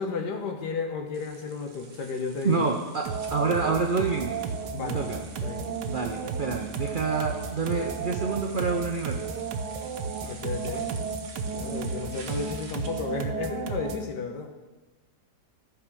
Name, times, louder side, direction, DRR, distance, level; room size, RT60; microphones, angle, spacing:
voice 1, 0.0-2.7 4.7-5.7 10.2-10.9 11.6-14.5, left 4 dB, 75° left, 4 dB, 1.7 m, -33 dB
sound 1, 1.1-13.2, right 4 dB, 45° right, 1.0 m, -46 dB
voice 2, 2.4-4.4 4.8-5.2 5.9-9.2, right 4 dB, 70° right, 3 dB, 0.5 m, -28 dB
sound 2, 3.1-14.1, right 5 dB, 85° right, 1.4 m, -33 dB
13.0 x 4.8 x 6.1 m, 1.2 s
omnidirectional pair, 1.8 m